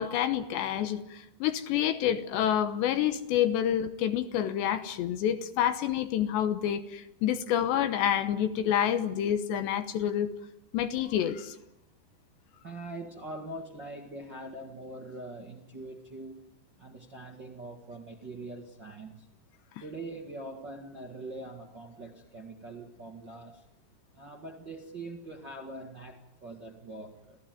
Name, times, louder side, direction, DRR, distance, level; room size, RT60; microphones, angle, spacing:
voice 1, 0.0-10.3 10.7-11.6, left 10 dB, 75° left, 10 dB, 3.1 m, -28 dB
voice 2, 12.6-16.4 16.8-19.2 19.8-23.6 24.1-27.4, right 2 dB, 40° right, 0 dB, 1.6 m, -43 dB
27.0 x 15.5 x 9.3 m, 0.86 s
omnidirectional pair, 5.3 m